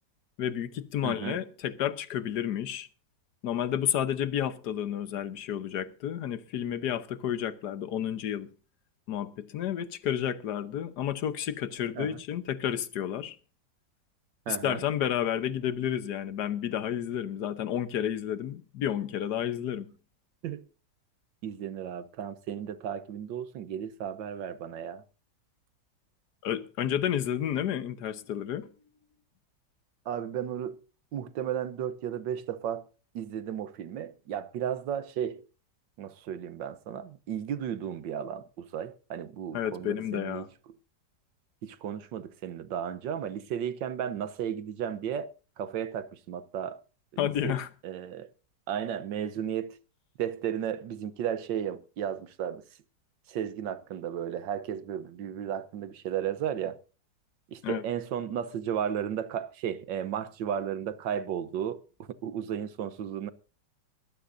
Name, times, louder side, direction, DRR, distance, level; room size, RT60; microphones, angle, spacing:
voice 1, 0.4-2.9 3.4-8.5 9.1-13.4 14.5-19.9 26.4-28.7 39.5-40.5 47.2-47.7 57.6-57.8, left 10 dB, 65° left, 1.5 m, -31 dB
voice 2, 1.0-1.4 12.0-12.2 14.5-14.8 20.4-20.6 21.4-25.0 30.1-30.8 31.1-32.9 33.1-35.4 36.0-40.5 41.6-45.3 45.6-46.8 47.1-47.5 47.8-48.3 48.7-49.8 50.2-52.6 53.3-56.8 57.5-61.8 62.2-63.3, right 9 dB, 90° right, 1.6 m, -34 dB
21.0 x 15.0 x 2.6 m
omnidirectional pair, 1.9 m